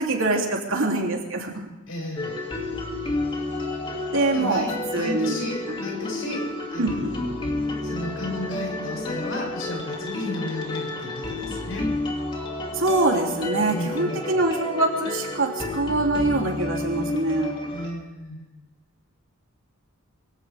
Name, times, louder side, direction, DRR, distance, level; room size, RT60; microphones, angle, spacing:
voice 1, 0.0-1.7 4.1-4.7 4.9-5.3 5.7-5.8 6.8-7.1 12.7-17.5, right 2 dB, 65° right, 0 dB, 3.4 m, -24 dB
voice 2, 1.9-2.3 4.3-4.7 4.9-7.4 7.8-11.9 13.7-14.2 17.7-18.5, left 1 dB, 70° left, 0 dB, 6.9 m, -33 dB
sound 1, 2.2-17.9, left 2 dB, 25° left, 2.8 m, -31 dB
24.0 x 16.5 x 3.7 m, 1.0 s
head